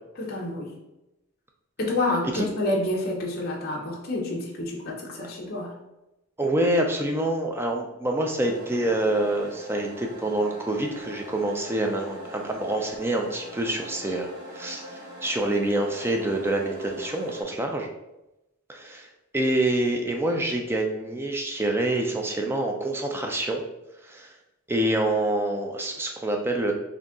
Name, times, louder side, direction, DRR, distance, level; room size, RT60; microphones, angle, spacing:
voice 1, 0.2-0.7 1.8-5.7, left 2 dB, 45° left, -3 dB, 0.7 m, -28 dB
voice 2, 6.4-17.9 18.7-23.6 24.0-24.3 24.7-26.7, right 1 dB, 10° right, 2 dB, 0.4 m, -26 dB
sound 1, 8.4-17.4, equal, 90° right, 1.5 m, -42 dB
3.9 x 2.7 x 3.5 m, 0.95 s
head